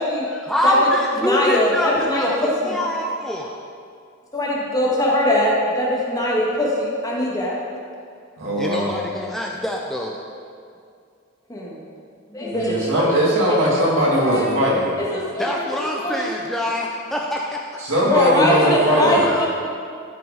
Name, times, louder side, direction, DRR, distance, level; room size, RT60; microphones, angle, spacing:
voice 1, 0.4-3.6 7.1-7.2 8.6-10.2 15.4-17.8 18.6-19.5, left 1 dB, ahead, -1 dB, 0.5 m, -25 dB
voice 2, 1.2-2.8 4.3-7.6 11.5-11.8 12.3-12.9 13.5-13.6 14.1-14.4 15.0-15.6 16.0-16.3 18.0-19.5, left 1 dB, 20° left, -5 dB, 1.6 m, -21 dB
voice 3, 8.4-8.9 12.5-14.9 17.9-19.2, equal, 75° right, -5 dB, 2.5 m, -19 dB
13.5 x 5.0 x 4.9 m, 2.3 s
head